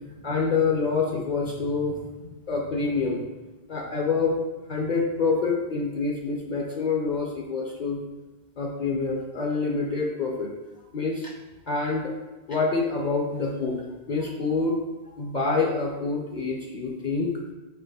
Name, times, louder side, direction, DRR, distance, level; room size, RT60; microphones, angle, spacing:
voice 1, 0.2-2.0 2.5-3.2 3.7-4.4 4.7-8.0 8.6-10.5 10.9-11.3 11.7-12.1 12.5-13.8 14.1-14.8 15.2-17.3, left 4 dB, 50° left, -1 dB, 0.7 m, -26 dB
4.7 x 2.9 x 3.9 m, 1.2 s
omnidirectional pair, 1.1 m